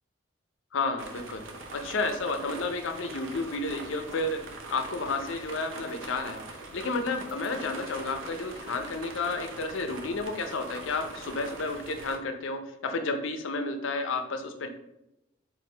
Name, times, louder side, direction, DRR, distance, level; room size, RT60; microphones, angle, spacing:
voice 1, 0.7-1.4 1.7-4.4 4.7-6.4 6.7-14.7, left 3 dB, 85° left, 6 dB, 0.5 m, -31 dB
sound 1, 1.0-12.2, right 2 dB, 85° right, 0.7 m, -42 dB
4.5 x 3.6 x 3.2 m, 0.87 s
head